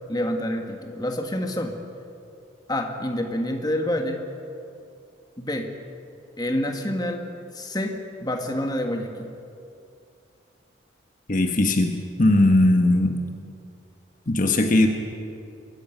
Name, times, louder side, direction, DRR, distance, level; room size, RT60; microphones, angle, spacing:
voice 1, 0.0-1.8 2.7-4.2 5.4-5.7 6.4-9.3, left 1 dB, 20° left, 4 dB, 1.6 m, -28 dB
voice 2, 11.3-13.2 14.3-14.9, left 2 dB, 40° left, 4 dB, 1.3 m, -19 dB
22.5 x 15.0 x 9.1 m, 2.6 s
head